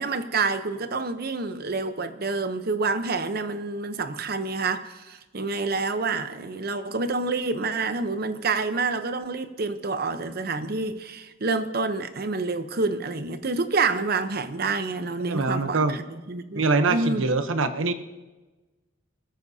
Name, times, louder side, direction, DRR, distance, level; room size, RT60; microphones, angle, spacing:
voice 1, 0.0-17.2, right 3 dB, 50° right, 0.8 m, -28 dB
voice 2, 15.3-16.0 16.5-17.9, right 3 dB, 85° right, 0.9 m, -23 dB
21.5 x 14.0 x 2.8 m
head